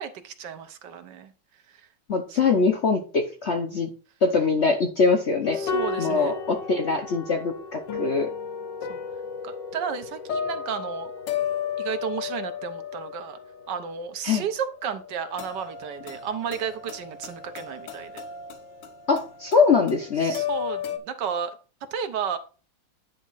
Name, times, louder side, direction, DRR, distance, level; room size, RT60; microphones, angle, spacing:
voice 1, 0.0-1.3 2.3-2.4 5.5-6.3 8.9-9.0 9.4-11.1 11.8-13.4 13.7-18.2 20.2-21.5 21.9-22.4, right 7 dB, 70° right, 9 dB, 1.4 m, -33 dB
voice 2, 2.1-3.9 4.2-5.6 6.0-8.3 14.2-14.4 19.1-20.4, left 4 dB, 50° left, 4 dB, 0.8 m, -23 dB
sound 1, 5.4-21.0, left 6 dB, 70° left, 1.5 m, -34 dB
9.6 x 3.5 x 5.5 m, 0.36 s
omnidirectional pair, 2.0 m